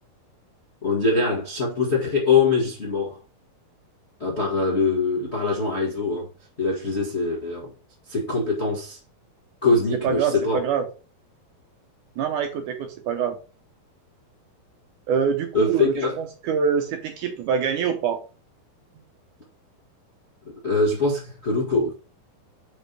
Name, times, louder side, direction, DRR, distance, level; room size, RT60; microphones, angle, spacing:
voice 1, 0.8-3.2 4.2-6.3 6.6-7.7 8.1-9.0 9.6-10.6 15.5-16.2 20.4-21.9, left 3 dB, 50° left, 0.8 m, -23 dB
voice 2, 10.0-10.8 12.2-13.4 15.1-15.9 16.4-18.2, right 7 dB, 70° right, 2.1 m, -24 dB
5.4 x 5.0 x 5.3 m
omnidirectional pair, 4.2 m